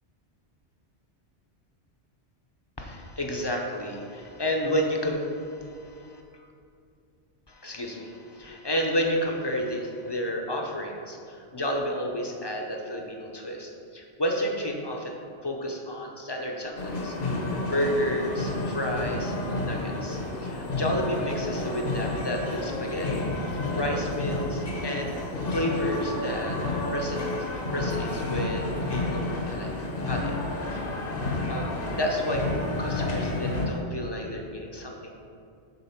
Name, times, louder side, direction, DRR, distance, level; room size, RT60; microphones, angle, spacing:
voice 1, 2.8-6.2 7.5-17.2 17.6-23.2 23.7-25.2 25.5-26.6 26.9-27.3 27.7-29.7 30.1-30.4 30.7-30.8 31.5-32.5 32.8-35.1, equal, 25° left, 0 dB, 0.7 m, -31 dB
sound 1, 16.8-33.7, left 2 dB, 55° left, 1.1 m, -30 dB
8.2 x 3.9 x 5.7 m, 2.4 s
omnidirectional pair, 1.2 m